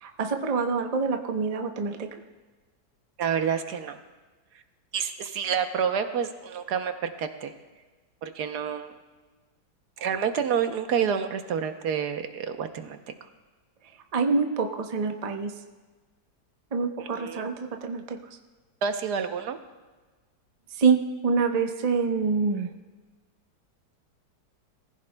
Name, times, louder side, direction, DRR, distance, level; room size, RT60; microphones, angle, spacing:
voice 1, 0.0-2.2 14.1-15.6 16.7-18.2 20.7-22.7, right 5 dB, 35° right, 5 dB, 0.6 m, -26 dB
voice 2, 3.2-4.0 4.9-7.5 8.2-8.9 10.0-13.0 17.2-17.4 18.8-19.6, right 7 dB, 70° right, 8 dB, 1.3 m, -28 dB
21.5 x 15.0 x 2.2 m, 1.3 s
omnidirectional pair, 1.8 m